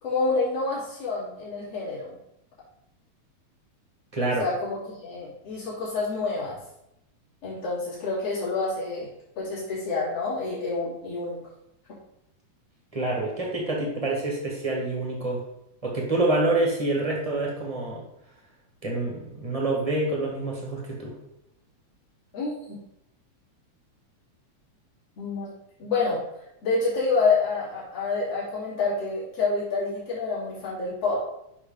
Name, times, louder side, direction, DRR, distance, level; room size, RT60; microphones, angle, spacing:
voice 1, 0.0-2.2 4.4-6.6 7.4-11.4 22.3-22.8 25.2-25.5 25.8-26.2 26.6-31.2, left 3 dB, 50° left, -8 dB, 3.9 m, -28 dB
voice 2, 4.1-4.5 12.9-15.4 15.8-18.0 18.8-21.2, right 2 dB, 25° right, -2 dB, 0.8 m, -27 dB
8.0 x 5.7 x 3.8 m, 0.81 s
omnidirectional pair, 3.4 m